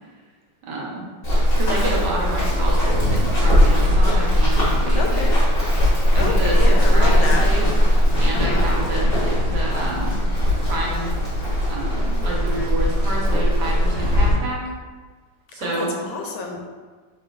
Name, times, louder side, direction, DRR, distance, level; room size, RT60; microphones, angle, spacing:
voice 1, 0.7-1.0 1.6-5.2 6.1-7.6 8.2-10.2 10.6-11.1 11.7-14.6 15.5-16.1, right 2 dB, 65° right, -4 dB, 1.4 m, -29 dB
Run, 1.2-14.3, equal, 35° left, 1.0 m, -19 dB
voice 2, 4.9-5.4 6.2-7.5 8.3-8.7 15.6-16.6, left 4 dB, 80° left, 1 dB, 1.4 m, -28 dB
5.9 x 3.3 x 2.4 m, 1.4 s
omnidirectional pair, 2.2 m